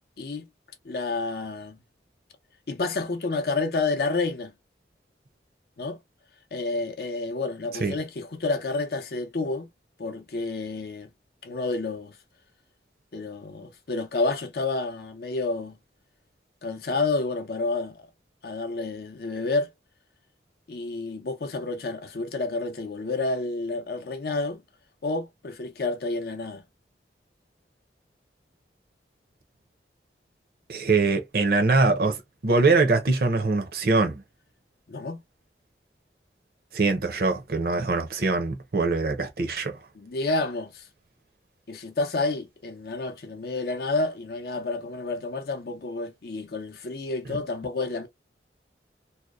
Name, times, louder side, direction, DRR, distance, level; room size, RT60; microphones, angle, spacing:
voice 1, 0.8-1.8 2.7-4.5 5.8-6.0 6.5-9.7 10.0-11.1 11.4-12.2 13.1-15.8 16.6-18.1 18.4-19.7 20.7-24.6 25.0-26.6 34.9-35.2 40.0-40.9 41.7-48.1, left 3 dB, 60° left, 0.6 m, -29 dB
voice 2, 30.7-32.2 32.4-34.2 36.7-39.8, right 3 dB, 55° right, 0.6 m, -23 dB
2.7 x 2.1 x 2.3 m
head